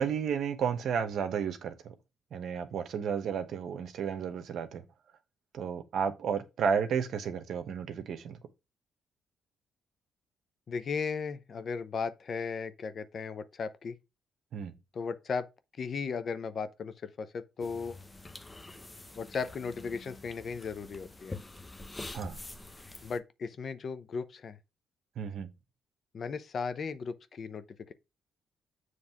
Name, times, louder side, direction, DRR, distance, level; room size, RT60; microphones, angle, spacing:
voice 1, 0.0-1.9 2.3-4.8 5.5-8.4 14.5-14.7 22.1-22.4 25.2-25.5, right 7 dB, 70° right, 1.0 m, -32 dB
voice 2, 10.7-14.0 14.9-15.5 15.8-18.0 19.2-21.4 23.0-24.6 26.1-27.9, left 5 dB, 50° left, 0.7 m, -36 dB
sound 1, 17.6-23.2, left 2 dB, 15° left, 0.8 m, -46 dB
7.4 x 3.2 x 5.8 m
cardioid pair, 90°, 0 cm